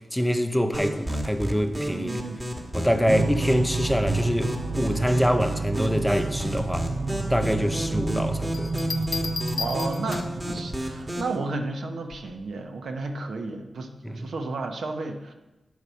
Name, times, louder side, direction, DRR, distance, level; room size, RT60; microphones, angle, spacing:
voice 1, 0.1-2.1 2.7-6.9 7.3-8.7 14.0-14.2, equal, 5° left, 0.6 m, -25 dB
sound 1, 0.7-11.4, equal, 15° right, 1.5 m, -32 dB
voice 2, 1.9-2.4 3.0-3.2 7.4-7.7 9.6-15.3, right 3 dB, 75° right, 1.0 m, -33 dB
sound 2, 3.1-11.3, right 3 dB, 35° right, 0.8 m, -30 dB
Bell, 8.5-10.5 12.1-12.4, left 4 dB, 50° left, 0.5 m, -34 dB
10.5 x 4.7 x 6.9 m
wide cardioid pair, 180°, 0 cm